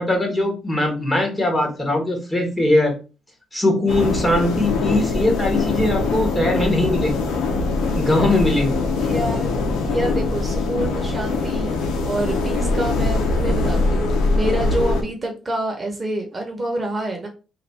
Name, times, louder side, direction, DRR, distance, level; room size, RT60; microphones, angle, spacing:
voice 1, 0.0-2.9 3.5-7.3 7.9-8.8, left 1 dB, 15° left, 1 dB, 1.5 m, -20 dB
sound 1, 3.9-15.0, left 3 dB, 90° left, 0.8 m, -22 dB
voice 2, 8.9-9.5 9.8-11.7 12.0-17.3, right 1 dB, 25° right, 2 dB, 1.0 m, -27 dB
3.2 x 2.5 x 4.2 m, 0.32 s
cardioid pair, 90°, 0 cm